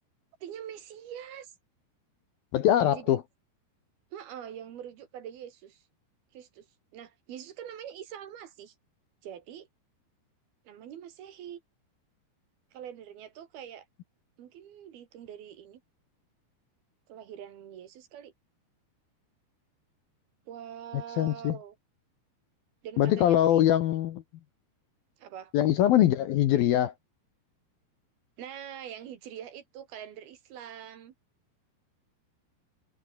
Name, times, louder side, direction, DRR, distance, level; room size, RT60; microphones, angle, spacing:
voice 1, 0.4-1.5 2.9-3.2 4.1-5.8 6.3-6.7 6.9-8.8 9.2-9.7 10.7-11.6 12.7-13.9 14.4-15.8 17.1-18.3 20.5-21.8 22.8-23.6 25.2-25.5 28.4-31.1, right 9 dB, 60° right, 3.4 m, -44 dB
voice 2, 2.5-3.2 20.9-21.6 23.0-24.2 25.5-26.9, left 12 dB, 65° left, 2.6 m, -23 dB
omnidirectional pair, 5.3 m